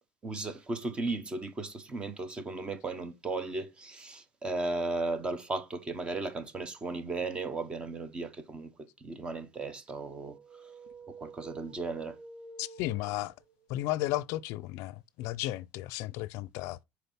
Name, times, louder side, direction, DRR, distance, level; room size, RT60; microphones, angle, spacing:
voice 1, 0.2-8.7 9.0-10.4 11.2-12.2, right 3 dB, 20° right, 1.2 m, -35 dB
sound 1, 10.1-13.7, right 4 dB, 85° right, 1.6 m, -50 dB
voice 2, 12.6-13.3 13.7-16.8, left 16 dB, 70° left, 0.5 m, -34 dB
6.8 x 4.7 x 5.7 m
cardioid pair, 150°, 5 cm